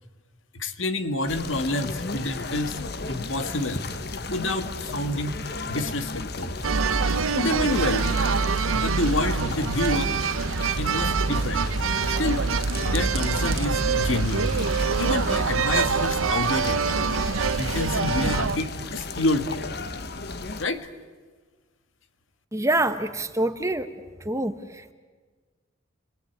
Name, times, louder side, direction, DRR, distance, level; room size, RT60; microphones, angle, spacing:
voice 1, 0.5-2.8 3.1-3.8 4.3-6.5 7.3-8.1 8.7-10.1 10.8-11.7 12.1-12.4 12.9-14.5 15.0-16.8 17.4-19.7 20.6-20.9, left 2 dB, 65° left, 8 dB, 1.9 m, -28 dB
sound 1, 1.3-20.7, left 3 dB, 50° left, 1.2 m, -34 dB
sound 2, 6.6-18.6, right 5 dB, 80° right, 0.8 m, -25 dB
voice 2, 22.5-23.9 24.2-24.9, right 2 dB, 15° right, 9 dB, 1.2 m, -26 dB
29.5 x 21.0 x 9.4 m, 1.4 s
head